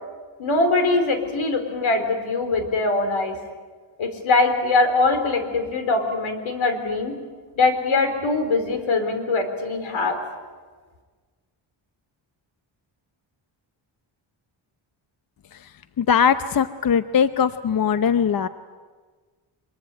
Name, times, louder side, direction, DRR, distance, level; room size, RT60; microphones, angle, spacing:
voice 1, 0.4-3.4 4.0-7.1 7.6-10.2, left 3 dB, 80° left, 7 dB, 4.1 m, -22 dB
voice 2, 16.0-18.5, left 7 dB, 45° left, 11 dB, 0.8 m, -20 dB
24.0 x 22.0 x 9.1 m, 1.4 s
cardioid pair, 110°, 47 cm